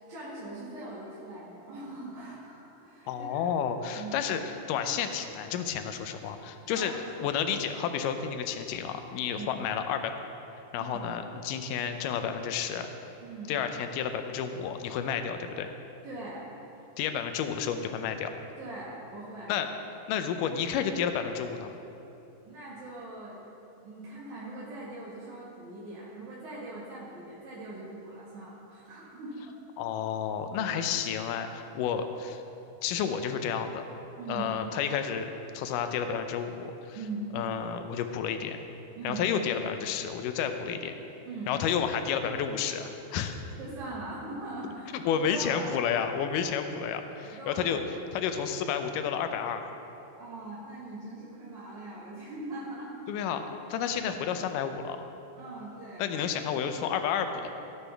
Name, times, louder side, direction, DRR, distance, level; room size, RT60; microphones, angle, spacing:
voice 1, 0.1-3.5 3.8-4.3 6.7-6.9 7.2-7.4 9.4-9.5 10.7-11.1 13.2-13.5 16.0-16.5 18.6-19.5 22.4-23.4 23.8-29.5 30.6-30.8 34.2-34.5 36.9-37.3 39.0-39.2 41.2-41.5 43.6-45.7 47.2-47.8 50.2-52.9 54.0-54.2 55.4-56.2, right 2 dB, 60° right, -9 dB, 3.0 m, -41 dB
voice 2, 3.1-4.4 4.7-6.9 7.2-10.1 10.7-12.9 13.5-15.7 17.0-18.3 19.5-19.7 20.1-21.7 29.8-32.4 32.8-33.8 34.3-37.0 37.3-38.6 39.0-40.9 41.5-43.4 44.9-47.8 48.1-49.7 53.1-53.4 53.7-55.0 56.0-57.5, left 7 dB, 80° left, 7 dB, 2.0 m, -31 dB
17.5 x 8.1 x 3.4 m, 2.9 s
omnidirectional pair, 4.3 m